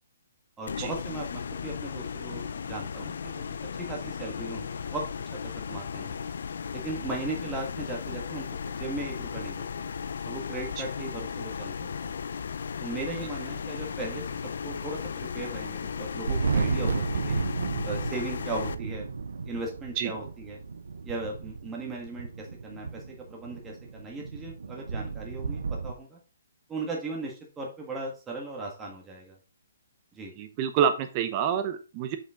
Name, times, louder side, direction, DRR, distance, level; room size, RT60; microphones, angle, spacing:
voice 1, 0.6-5.0 5.4-6.2 6.7-9.9 10.2-12.1 12.8-14.2 14.6-17.4 17.8-19.1 19.4-20.6 21.0-23.0 23.3-26.2 26.7-29.4 30.1-30.3, right 3 dB, 10° right, -1 dB, 1.6 m, -37 dB
sound 1, 0.7-18.7, left 6 dB, 70° left, 0.5 m, -36 dB
Thunder, 16.1-25.9, right 5 dB, 85° right, 0.7 m, -33 dB
voice 2, 30.4-32.2, right 8 dB, 30° right, 8 dB, 1.0 m, -27 dB
6.5 x 5.4 x 3.7 m, 0.33 s
hypercardioid pair, 155°, 0 cm